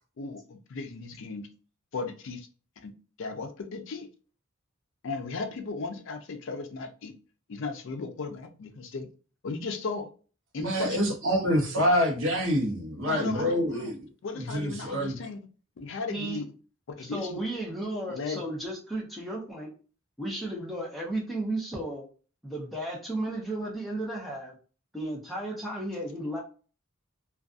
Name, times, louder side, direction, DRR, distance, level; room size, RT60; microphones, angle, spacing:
voice 1, 0.2-1.5 1.9-2.5 2.8-2.9 3.2-4.1 5.0-7.1 7.5-9.1 9.4-10.1 10.5-11.0 13.1-13.9 14.2-15.4 15.8-16.4 17.0-17.4 18.1-18.4, left 4 dB, 60° left, 0.4 m, -36 dB
voice 2, 10.6-14.0 14.4-15.2, equal, 60° right, 0.7 m, -26 dB
voice 3, 16.1-16.4 17.0-19.7 20.2-22.0 22.4-24.5 24.9-26.4, right 1 dB, ahead, 0.7 m, -34 dB
2.5 x 2.3 x 2.4 m
head